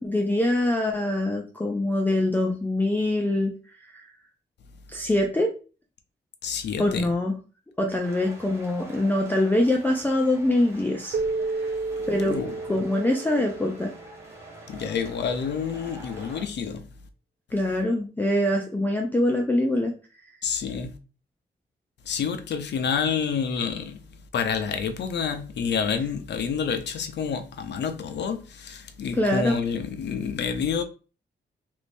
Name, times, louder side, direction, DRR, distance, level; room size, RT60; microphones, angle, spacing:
voice 1, 0.0-3.5 3.8-4.0 4.9-5.5 6.8-7.3 7.8-11.2 12.1-12.4 12.7-13.9 17.5-20.0 29.1-29.6, left 1 dB, 10° left, 0.4 m, -24 dB
voice 2, 6.4-7.1 12.2-12.8 14.7-16.9 20.4-20.9 22.1-24.0 24.3-30.8, left 6 dB, 80° left, 0.5 m, -28 dB
sound 1, 8.0-16.4, right 2 dB, 15° right, 1.0 m, -46 dB
Keyboard (musical), 11.1-14.3, right 3 dB, 65° right, 0.5 m, -31 dB
3.0 x 2.6 x 3.4 m
wide cardioid pair, 180°, 18 cm